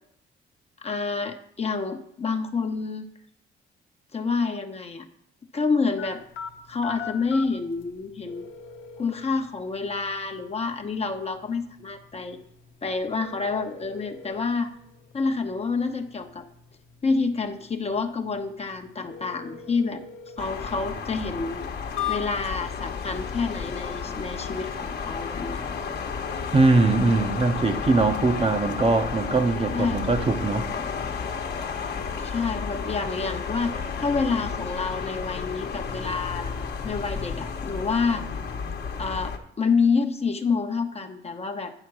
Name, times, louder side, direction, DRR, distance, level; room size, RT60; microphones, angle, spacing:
voice 1, 0.8-3.1 4.1-5.0 5.5-6.2 6.7-8.4 9.0-12.4 12.8-14.7 15.1-16.5 17.0-20.0 20.4-21.6 22.1-25.6 29.7-30.0 32.2-36.5 36.8-38.2 39.0-41.7, left 4 dB, 30° left, 5 dB, 0.9 m, -28 dB
sound 1, 6.0-22.7, left 8 dB, 80° left, 1.0 m, -41 dB
sound 2, 20.4-39.4, left 5 dB, 55° left, 1.2 m, -32 dB
voice 2, 26.5-30.7, right 3 dB, 30° right, 6 dB, 0.9 m, -21 dB
10.0 x 4.5 x 6.0 m, 0.74 s
cardioid pair, 90°, 20 cm